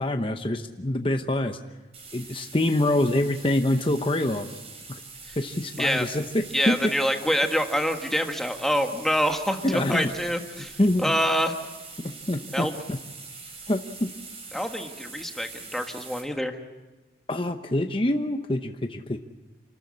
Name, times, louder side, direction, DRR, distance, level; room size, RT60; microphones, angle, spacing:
voice 1, 0.0-1.6 2.1-4.5 4.9-5.0 5.4-6.9 9.6-10.1 10.8-11.1 12.0-13.0 13.7-14.1 17.3-19.2, left 1 dB, 30° left, 6 dB, 0.9 m, -25 dB
sound 1, 1.9-16.2, right 4 dB, 35° right, 4.9 m, -43 dB
voice 2, 6.5-11.5 12.5-12.7 14.5-16.6, equal, ahead, 4 dB, 1.5 m, -26 dB
28.5 x 13.0 x 8.5 m, 1.2 s
head